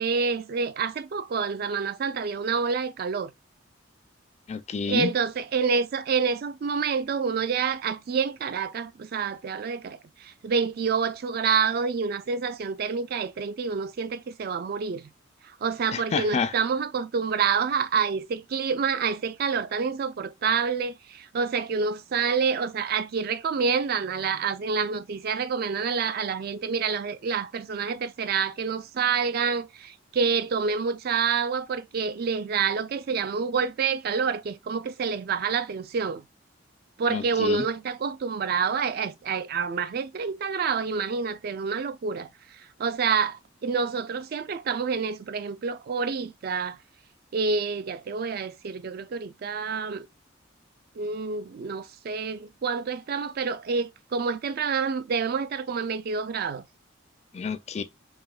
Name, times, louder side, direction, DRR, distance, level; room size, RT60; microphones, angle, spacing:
voice 1, 0.0-3.3 4.9-15.1 15.6-36.2 37.0-42.3 42.8-46.8 47.3-50.1 51.0-56.6, right 5 dB, 50° right, 0.4 m, -28 dB
voice 2, 4.5-5.1 15.9-16.5 37.1-37.7 57.3-57.8, left 5 dB, 35° left, 0.4 m, -29 dB
4.8 x 2.8 x 2.4 m
head